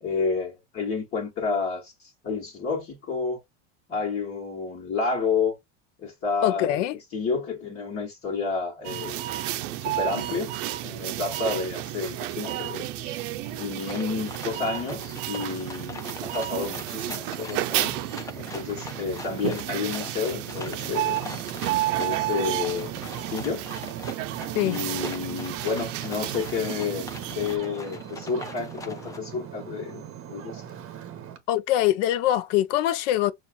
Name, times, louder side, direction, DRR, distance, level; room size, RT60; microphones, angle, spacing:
voice 1, 0.0-1.9 2.2-3.4 3.9-5.6 6.0-6.8 7.1-9.2 9.8-10.6 10.8-12.9 13.5-18.0 18.3-21.2 22.0-22.9 23.3-23.7 24.6-30.0 30.3-30.6, left 5 dB, 35° left, 1.3 m, -30 dB
voice 2, 6.4-7.0 24.5-24.8 31.5-33.3, left 13 dB, 75° left, 0.6 m, -23 dB
sound 1, 8.8-27.6, right 14 dB, 85° right, 0.5 m, -32 dB
sound 2, 11.8-11.9 12.3-12.7 13.1-29.2, left 3 dB, 10° left, 0.4 m, -42 dB
Ocean, 20.5-31.4, right 10 dB, 40° right, 0.9 m, -40 dB
5.5 x 2.4 x 2.2 m
supercardioid pair, 125°, 36 cm